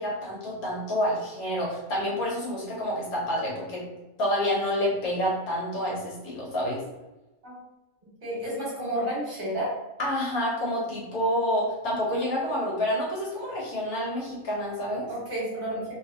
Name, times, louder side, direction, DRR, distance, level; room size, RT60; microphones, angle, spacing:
voice 1, 0.0-3.9 4.2-6.8 10.0-15.1, equal, 90° left, -4 dB, 1.7 m, -28 dB
voice 2, 8.2-9.7 15.1-15.9, equal, 35° right, -7 dB, 1.6 m, -31 dB
3.2 x 3.2 x 2.9 m, 1.0 s
omnidirectional pair, 1.5 m